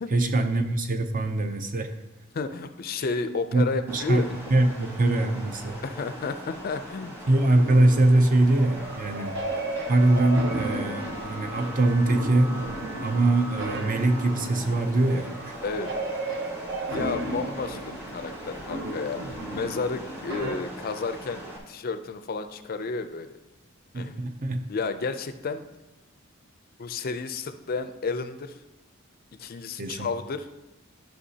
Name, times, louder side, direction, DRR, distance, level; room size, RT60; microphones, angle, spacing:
voice 1, 0.1-1.9 3.5-3.6 3.9-5.8 7.3-9.4 9.9-12.6 13.0-15.6 23.9-24.7 29.8-30.1, right 2 dB, 40° right, 6 dB, 0.6 m, -23 dB
voice 2, 2.3-4.3 5.8-7.2 15.6-15.9 16.9-23.4 23.9-24.2 24.7-25.6 26.8-28.6 29.4-30.5, left 4 dB, 45° left, 10 dB, 0.4 m, -32 dB
sound 1, 3.9-21.6, equal, 10° right, 1.3 m, -41 dB
sound 2, 7.6-20.6, right 2 dB, 60° right, 0.9 m, -35 dB
sound 3, 9.5-14.5, equal, 80° right, 1.3 m, -41 dB
11.5 x 5.8 x 2.8 m, 1.0 s
head